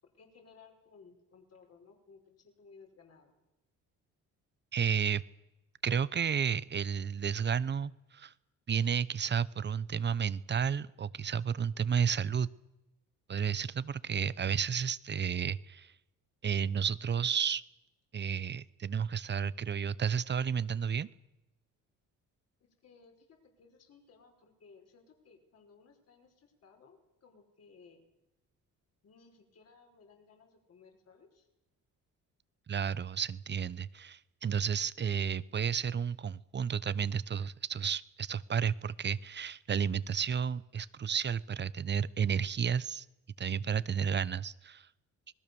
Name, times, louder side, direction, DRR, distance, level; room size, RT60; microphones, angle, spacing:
voice 1, 0.0-3.3 22.6-28.0 29.0-31.5, left 5 dB, 50° left, 4 dB, 5.3 m, -60 dB
voice 2, 4.7-5.2 5.8-8.3 8.7-12.5 13.3-15.9 16.4-17.6 18.1-21.1 32.7-43.1 43.4-44.9, right 7 dB, 35° right, 18 dB, 0.9 m, -32 dB
26.5 x 20.0 x 7.1 m, 0.96 s
cardioid pair, 110°, 32 cm